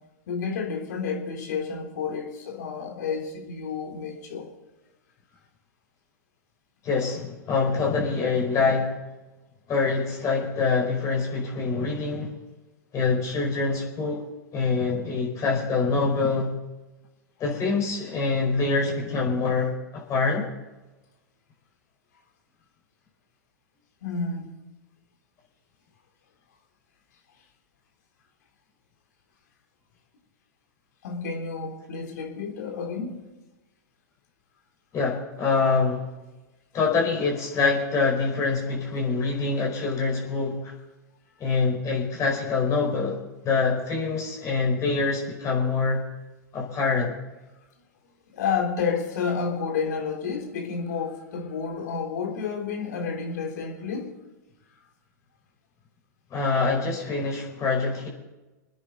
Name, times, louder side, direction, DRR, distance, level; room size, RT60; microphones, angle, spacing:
voice 1, 0.3-4.5 24.0-24.5 31.0-33.2 48.3-54.1, left 5 dB, 65° left, 1 dB, 3.6 m, -30 dB
voice 2, 6.8-8.9 9.7-12.3 12.9-14.3 14.5-16.5 17.4-20.5 34.9-36.1 36.7-40.7 41.4-46.1 46.5-47.1 56.3-58.1, left 4 dB, 35° left, -1 dB, 5.0 m, -25 dB
27.5 x 9.9 x 4.0 m, 1.1 s
hypercardioid pair, 100°, 10 cm